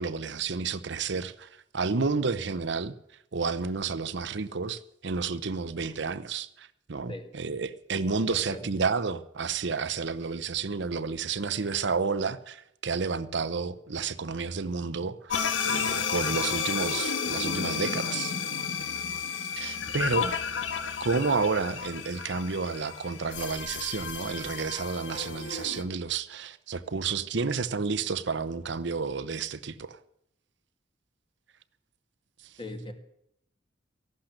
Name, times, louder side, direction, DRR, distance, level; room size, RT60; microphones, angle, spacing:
voice 1, 0.0-2.9 3.3-15.4 15.6-18.3 19.6-20.3 21.0-30.0 32.4-32.5, right 4 dB, 65° right, 0.8 m, -31 dB
voice 2, 8.3-8.6 32.6-32.9, left 1 dB, 25° left, 2.2 m, -39 dB
sound 1, 15.3-25.8, left 6 dB, 85° left, 1.4 m, -32 dB
15.0 x 12.0 x 6.6 m
head